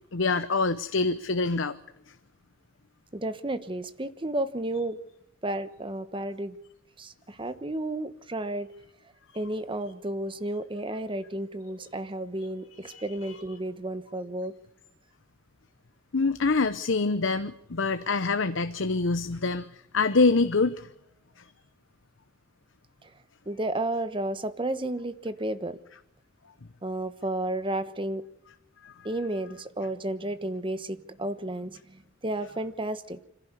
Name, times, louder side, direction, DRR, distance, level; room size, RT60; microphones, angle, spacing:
voice 1, 0.1-1.8 12.8-13.4 16.1-20.9 28.8-28.9, left 3 dB, 70° left, 12 dB, 0.8 m, -26 dB
voice 2, 3.1-5.0 5.4-6.6 7.0-8.7 9.3-14.5 23.0-23.1 23.5-25.8 26.8-28.2 29.0-33.3, right 1 dB, 25° right, 11 dB, 1.2 m, -32 dB
26.0 x 15.5 x 6.8 m, 0.82 s
head